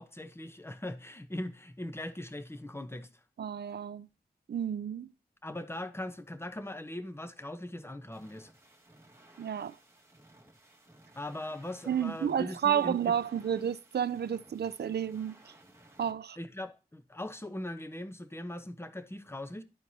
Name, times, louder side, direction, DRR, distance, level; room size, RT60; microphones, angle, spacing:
voice 1, 0.0-3.1 5.4-8.5 11.2-13.2 16.4-19.6, left 1 dB, 15° left, 0.8 m, -40 dB
voice 2, 3.4-4.1 4.5-5.1 9.4-9.8 11.9-15.4 16.0-16.4, right 9 dB, 85° right, 0.4 m, -31 dB
sound 1, 8.1-16.1, right 1 dB, 15° right, 1.7 m, -59 dB
12.5 x 4.5 x 2.8 m
wide cardioid pair, 85°, 17 cm